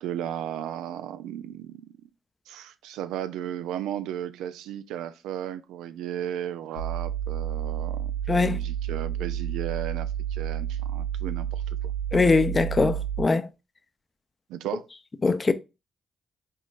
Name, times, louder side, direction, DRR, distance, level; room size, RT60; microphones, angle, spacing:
voice 1, 0.0-1.9 2.5-11.9 14.5-14.8, right 10 dB, 80° right, 0.3 m, -35 dB
sound 1, 6.8-13.2, right 10 dB, 90° left, 0.6 m, -30 dB
voice 2, 8.3-8.6 12.1-13.5 15.2-15.5, left 4 dB, 40° left, 0.6 m, -22 dB
5.3 x 3.9 x 2.4 m
hypercardioid pair, 40°, 0 cm